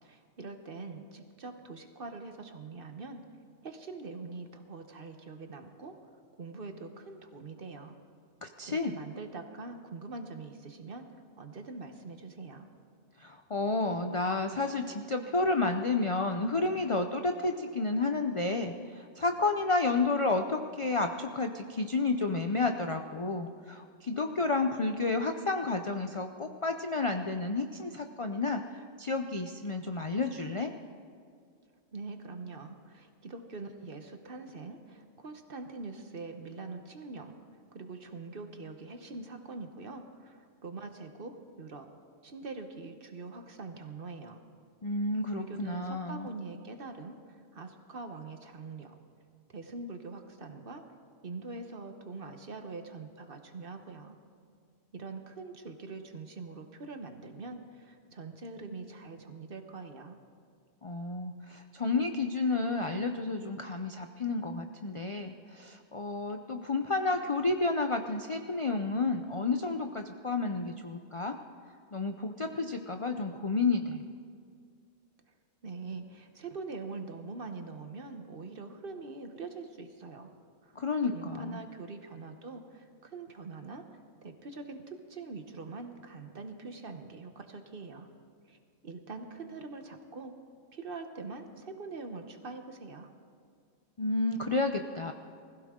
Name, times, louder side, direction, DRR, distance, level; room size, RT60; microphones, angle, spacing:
voice 1, 0.0-3.2 3.6-6.0 6.4-7.9 8.7-11.1 11.4-12.7 31.9-37.3 37.7-41.9 42.2-44.4 45.3-49.0 49.5-50.8 51.2-54.2 54.9-60.2 75.6-80.3 80.6-80.8 81.1-88.1 88.5-90.3 90.7-93.1, right 3 dB, 45° right, 6 dB, 1.1 m, -43 dB
voice 2, 8.4-8.9 13.2-28.6 29.0-30.7 44.8-46.3 60.8-71.4 71.9-74.0 80.8-81.6 94.0-95.1, left 3 dB, 50° left, 6 dB, 0.3 m, -31 dB
20.5 x 15.5 x 3.7 m, 2.2 s
omnidirectional pair, 1.4 m